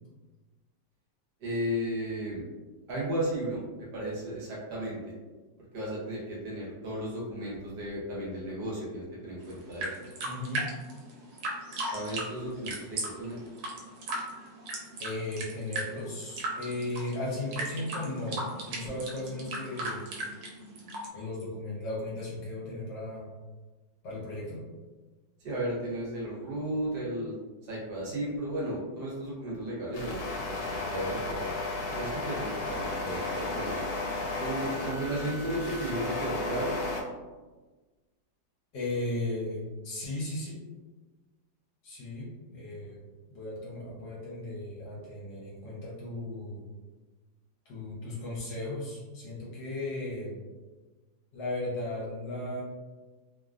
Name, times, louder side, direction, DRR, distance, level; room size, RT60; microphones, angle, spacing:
voice 1, 1.4-2.4 2.9-5.0 5.7-10.0 11.9-13.4 25.4-27.3 27.7-31.5 31.9-33.8 34.4-36.8, right 1 dB, 65° right, -6 dB, 1.3 m, -34 dB
sound 1, 9.4-21.1, right 1 dB, 85° right, 1.4 m, -37 dB
voice 2, 10.2-10.6 15.0-20.0 21.1-23.3 24.0-24.6 38.7-40.6 41.8-43.0 43.3-46.7 47.6-50.4 51.3-52.6, left 2 dB, 70° left, -6 dB, 1.5 m, -36 dB
sound 2, 29.9-37.0, left 2 dB, 85° left, 1.4 m, -34 dB
3.4 x 2.2 x 2.4 m, 1.3 s
omnidirectional pair, 2.1 m